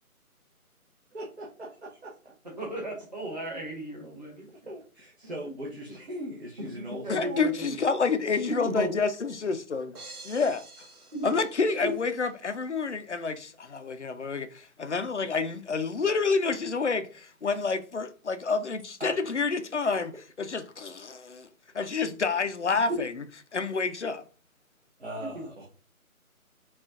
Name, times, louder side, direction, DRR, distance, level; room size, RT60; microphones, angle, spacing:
voice 1, 1.1-2.1 4.5-7.4 19.0-19.1 19.9-20.0 25.0-25.6, right 1 dB, 50° right, 1.0 m, -40 dB
voice 2, 2.6-4.5 7.0-7.7 8.5-8.9 11.1-11.3 22.9-23.0 25.2-25.4, right 1 dB, 30° right, 1.2 m, -34 dB
voice 3, 7.1-9.9 10.3-10.6 11.2-20.1 20.4-21.5 21.7-23.2 23.5-24.2, left 4 dB, 55° left, 0.5 m, -28 dB
sound 1, 9.9-12.2, right 2 dB, 90° right, 0.9 m, -48 dB
5.6 x 2.4 x 2.5 m
figure-of-eight pair, 155°, 44 cm